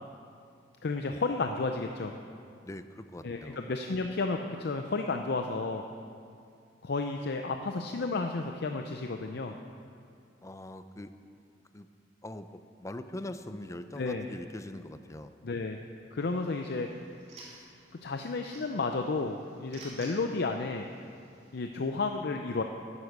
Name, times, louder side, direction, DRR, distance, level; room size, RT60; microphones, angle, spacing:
voice 1, 0.8-2.1 3.2-5.8 6.8-9.6 14.0-14.3 15.4-15.8 16.1-16.9 17.5-17.6 18.0-20.9 21.5-22.6, left 3 dB, 60° left, 4 dB, 0.6 m, -32 dB
voice 2, 2.6-3.6 10.4-11.1 11.7-11.9 12.2-15.3, left 1 dB, 15° left, 10 dB, 0.5 m, -42 dB
sound 1, 16.2-21.6, right 2 dB, 35° right, 2.8 m, -54 dB
11.0 x 9.6 x 6.6 m, 2.3 s
head